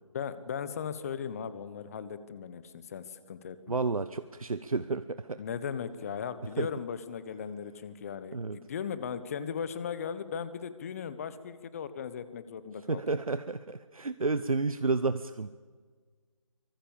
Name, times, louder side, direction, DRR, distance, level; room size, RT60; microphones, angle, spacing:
voice 1, 0.1-3.8 5.4-13.0, left 7 dB, 25° left, 14 dB, 1.1 m, -37 dB
voice 2, 3.7-5.4 6.6-6.7 8.3-8.6 12.9-15.5, right 3 dB, 85° right, 12 dB, 1.0 m, -31 dB
24.0 x 21.5 x 7.2 m, 1.5 s
figure-of-eight pair, 155°, 17 cm